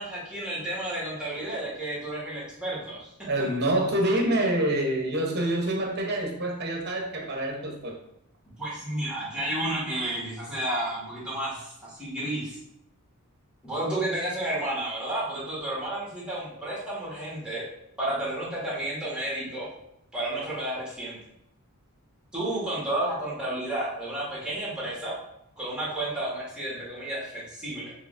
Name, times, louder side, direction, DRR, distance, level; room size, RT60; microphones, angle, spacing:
voice 1, 0.0-3.1 8.6-12.6 13.6-17.6 18.0-19.7 20.1-21.2 22.3-25.2 25.6-27.9, right 1 dB, 5° right, -7 dB, 1.7 m, -31 dB
voice 2, 3.3-8.0, right 1 dB, 50° right, 1 dB, 0.9 m, -26 dB
6.4 x 3.2 x 2.6 m, 0.77 s
head